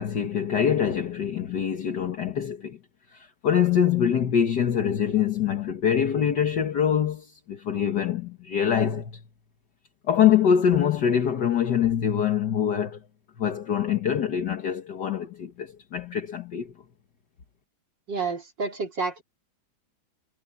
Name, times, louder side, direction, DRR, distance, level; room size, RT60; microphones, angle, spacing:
voice 1, 0.0-2.8 3.1-9.2 10.1-13.0 13.4-16.7, left 8 dB, 60° left, 1.9 m, -24 dB
voice 2, 18.1-19.2, right 4 dB, 60° right, 4.2 m, -29 dB
omnidirectional pair, 2.2 m